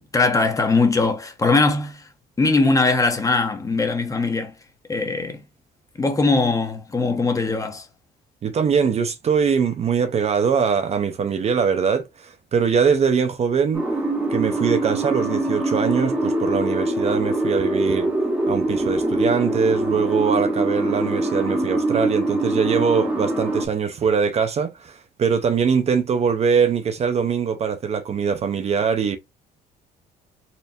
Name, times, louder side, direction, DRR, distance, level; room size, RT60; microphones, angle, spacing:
voice 1, 0.1-2.1 2.4-4.5 4.9-5.4 6.0-7.9, left 3 dB, 20° left, 0.9 m, -20 dB
voice 2, 8.4-13.9 14.3-18.1 18.5-29.2, right 6 dB, 40° right, 0.6 m, -22 dB
sound 1, 13.7-23.7, right 2 dB, 10° right, 1.3 m, -23 dB
4.3 x 2.6 x 2.7 m
cardioid pair, 110°, 17 cm